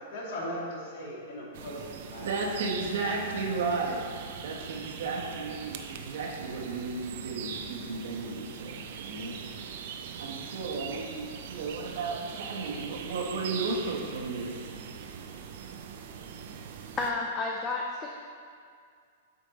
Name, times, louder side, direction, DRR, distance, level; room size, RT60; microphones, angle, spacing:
voice 1, 0.0-2.3, equal, 50° left, -4 dB, 1.8 m, -38 dB
sound 1, 1.5-17.1, right 7 dB, 45° right, 0.4 m, -41 dB
voice 2, 2.2-9.4 10.2-14.8, right 3 dB, 65° right, -1 dB, 1.2 m, -34 dB
voice 3, 17.0-18.1, left 3 dB, 15° left, 0 dB, 0.4 m, -31 dB
7.8 x 5.1 x 4.1 m, 2.2 s
supercardioid pair, 175°, 0 cm